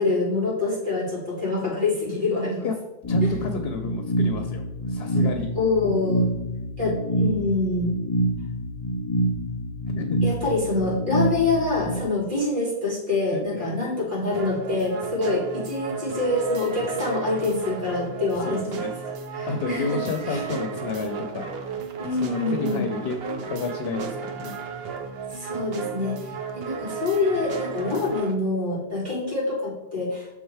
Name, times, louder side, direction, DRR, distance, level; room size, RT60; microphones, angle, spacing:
voice 1, 0.0-2.7 3.2-3.3 5.5-6.2 6.8-7.9 10.2-18.8 19.3-20.0 20.3-20.4 22.0-22.9 25.3-30.4, left 3 dB, 50° right, -6 dB, 2.7 m, -26 dB
sound 1, 3.0-12.0, right 1 dB, 25° left, 1.4 m, -26 dB
voice 2, 3.1-5.5 9.9-10.2 13.3-13.8 18.4-18.9 19.5-21.6 22.2-24.6, left 4 dB, 70° left, 5 dB, 0.9 m, -31 dB
sound 2, 14.3-28.4, right 6 dB, 75° right, 0.9 m, -34 dB
6.4 x 3.7 x 4.6 m, 1.0 s
omnidirectional pair, 1.1 m